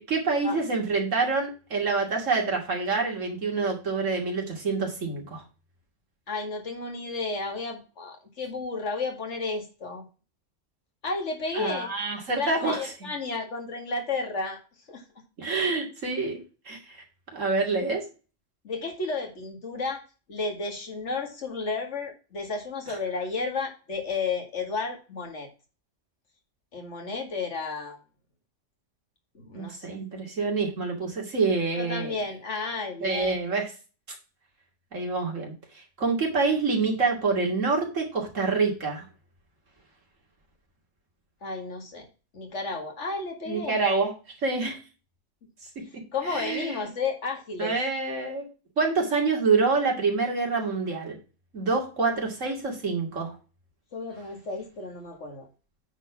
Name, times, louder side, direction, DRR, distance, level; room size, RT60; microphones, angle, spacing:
voice 1, 0.0-5.4 11.5-12.8 15.4-16.4 16.7-17.0 17.3-18.0 29.5-32.2 33.0-33.7 34.9-35.5 36.0-39.0 43.5-44.1 44.4-44.8 46.3-46.8 47.6-48.5 48.8-51.2 51.5-53.3, right 4 dB, 80° right, 0 dB, 2.8 m, -26 dB
voice 2, 6.3-10.1 11.0-11.9 12.3-14.6 14.9-15.0 18.6-20.0 20.3-25.5 26.7-28.0 29.3-30.0 31.8-33.3 41.4-42.1 42.3-43.8 46.1-47.8 53.9-55.5, left 3 dB, 65° left, 3 dB, 2.3 m, -32 dB
9.0 x 4.3 x 5.8 m, 0.34 s
omnidirectional pair, 1.3 m